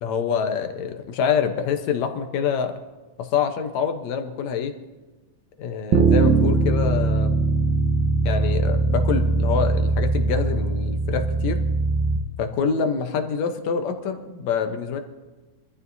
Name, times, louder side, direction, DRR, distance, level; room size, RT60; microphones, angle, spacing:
voice 1, 0.0-2.7 3.2-4.7 5.6-7.4 8.3-11.7 12.4-15.0, left 6 dB, 70° left, 6 dB, 2.2 m, -26 dB
Bass guitar, 5.9-12.2, right 3 dB, 75° right, 2.5 m, -21 dB
24.0 x 14.0 x 2.7 m, 1.2 s
omnidirectional pair, 3.4 m